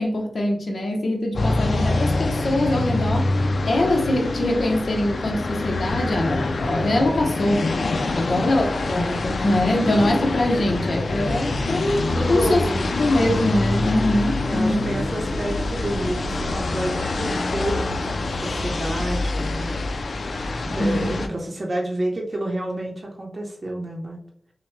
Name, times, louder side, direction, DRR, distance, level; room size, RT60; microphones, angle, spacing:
voice 1, 0.0-3.3 3.6-7.7 8.1-12.6 13.0-14.8 20.8-21.2, left 1 dB, 55° left, 1 dB, 0.9 m, -23 dB
sound 1, 1.3-21.3, left 2 dB, 70° left, 0.4 m, -25 dB
voice 2, 8.0-8.5 12.1-13.1 14.4-20.0 20.6-24.2, right 1 dB, 45° right, 0 dB, 0.8 m, -29 dB
6.0 x 2.2 x 3.2 m, 0.62 s
wide cardioid pair, 100°, 0 cm